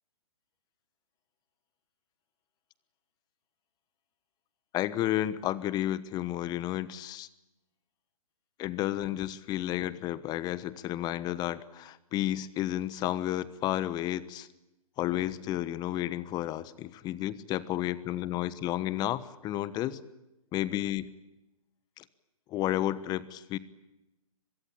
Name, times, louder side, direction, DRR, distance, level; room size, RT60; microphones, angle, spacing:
voice 1, 4.7-7.3 8.6-14.5 15.0-20.0 20.5-21.1 22.0-22.1 22.5-23.6, left 13 dB, 20° left, 17 dB, 1.2 m, -32 dB
24.0 x 22.0 x 8.9 m, 0.93 s
hypercardioid pair, 130°, 19 cm